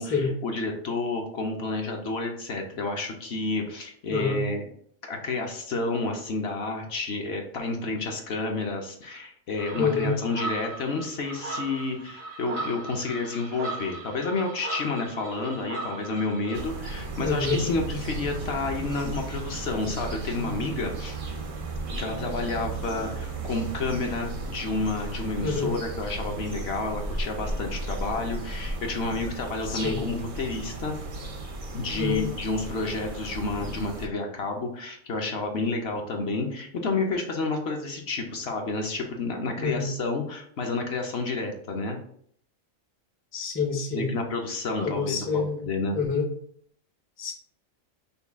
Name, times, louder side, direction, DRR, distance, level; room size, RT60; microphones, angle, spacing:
voice 1, 0.0-4.6 5.1-21.2 21.9-30.9 31.7-42.0 43.9-46.0, left 3 dB, 60° left, 2 dB, 0.8 m, -30 dB
voice 2, 4.1-4.4 9.8-10.1 17.2-17.7 25.4-25.7 29.7-30.0 31.9-32.3 39.6-39.9 43.3-44.1 44.8-45.7 45.9-46.3 47.2-47.3, left 4 dB, 20° left, 1 dB, 0.4 m, -27 dB
sound 1, 9.6-16.6, right 3 dB, 85° right, 1.6 m, -37 dB
sound 2, 16.5-34.1, right 2 dB, 65° right, 0.3 m, -35 dB
5.5 x 2.2 x 3.4 m, 0.63 s
omnidirectional pair, 1.4 m